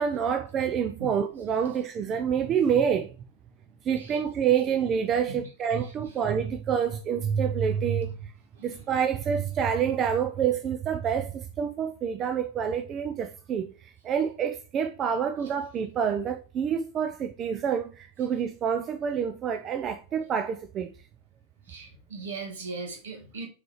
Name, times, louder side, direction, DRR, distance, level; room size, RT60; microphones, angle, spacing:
voice 1, 0.0-3.1 3.8-8.3 8.6-20.9, right 7 dB, 30° right, 0.5 m, -27 dB
voice 2, 21.7-23.5, right 3 dB, 60° right, 2.1 m, -39 dB
5.8 x 5.0 x 3.2 m
figure-of-eight pair, 90°, 0 cm